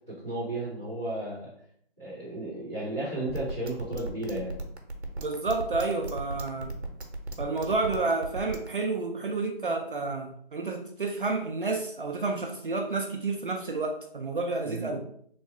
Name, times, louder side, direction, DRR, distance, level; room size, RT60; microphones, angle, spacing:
voice 1, 0.1-1.5 2.0-4.6 14.6-15.1, right 1 dB, 5° left, -14 dB, 0.9 m, -34 dB
sound 1, 3.3-8.7, right 2 dB, 85° right, 0.8 m, -36 dB
voice 2, 5.2-6.7 7.4-15.0, right 3 dB, 55° right, 3 dB, 0.4 m, -30 dB
3.1 x 2.2 x 3.9 m, 0.66 s
figure-of-eight pair, 160°, 32 cm